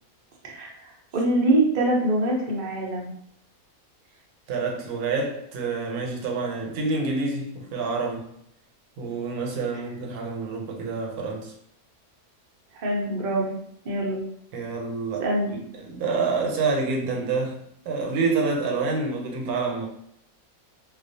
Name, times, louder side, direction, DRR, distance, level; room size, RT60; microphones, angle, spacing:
voice 1, 0.4-3.1 12.7-13.6 13.8-14.2 15.2-15.6, right 1 dB, 55° right, -2 dB, 0.5 m, -24 dB
voice 2, 4.5-8.3 9.0-11.5 14.5-19.9, right 4 dB, 85° right, 1 dB, 1.1 m, -28 dB
2.3 x 2.3 x 2.6 m, 0.71 s
omnidirectional pair, 1.6 m